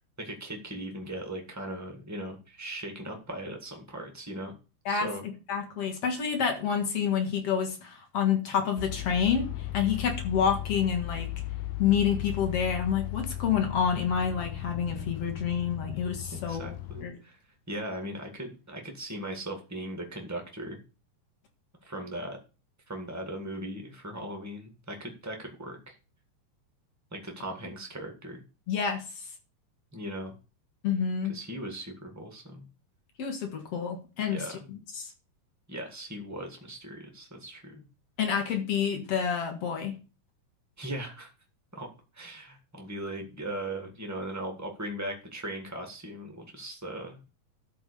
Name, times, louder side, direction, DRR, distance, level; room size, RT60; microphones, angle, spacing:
voice 1, 0.2-4.5 4.9-5.2 16.4-17.4 17.7-20.8 21.8-22.4 22.9-26.0 27.1-28.4 29.9-30.3 31.3-32.7 34.3-34.7 35.7-37.9 40.8-41.3 41.7-41.9 42.1-47.3, right 1 dB, 20° right, 3 dB, 0.4 m, -38 dB
voice 2, 5.5-9.5 9.7-11.3 11.8-16.7 17.0-17.1 28.7-29.0 30.8-31.3 33.2-34.4 34.9-35.1 38.2-39.9, left 7 dB, 50° left, 4 dB, 2.4 m, -28 dB
sound 1, 8.8-17.0, left 14 dB, 85° left, 2.4 m, -36 dB
12.5 x 4.6 x 6.8 m, 0.33 s
omnidirectional pair, 3.9 m